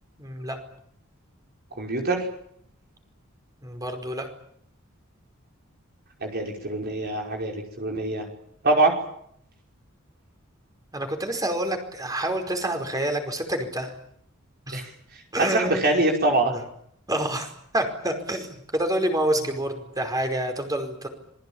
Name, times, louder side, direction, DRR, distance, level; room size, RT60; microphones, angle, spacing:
voice 1, 0.2-0.6 3.6-4.3 10.9-13.9 14.7-14.9 15.3-16.0 17.1-17.5 17.7-21.1, right 1 dB, 20° right, 5 dB, 5.1 m, -27 dB
voice 2, 1.8-2.2 6.2-8.3 8.6-8.9 14.7-14.8 15.4-16.5, right 2 dB, 50° right, 1 dB, 5.4 m, -23 dB
27.0 x 21.0 x 8.9 m, 0.70 s
head